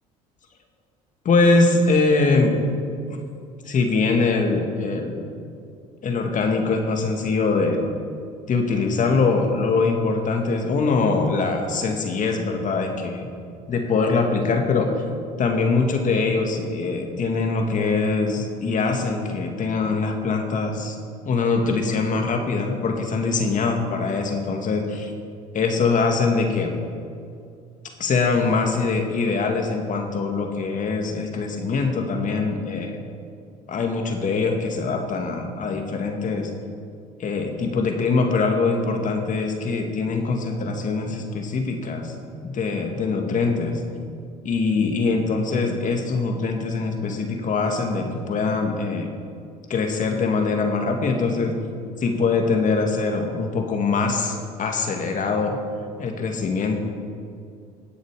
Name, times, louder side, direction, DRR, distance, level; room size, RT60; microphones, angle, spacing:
voice 1, 1.3-2.5 3.1-3.2 3.7-5.2 6.0-7.8 8.5-13.3 13.7-15.0 15.4-21.0 21.3-25.1 25.5-26.8 28.0-33.0 33.7-36.5 37.2-42.1 42.4-43.8 44.4-49.1 49.7-51.6 52.0-55.6 56.0-56.8, left 4 dB, 45° left, 3 dB, 2.0 m, -23 dB
17.5 x 6.6 x 4.9 m, 2.3 s
hypercardioid pair, 70°, 19 cm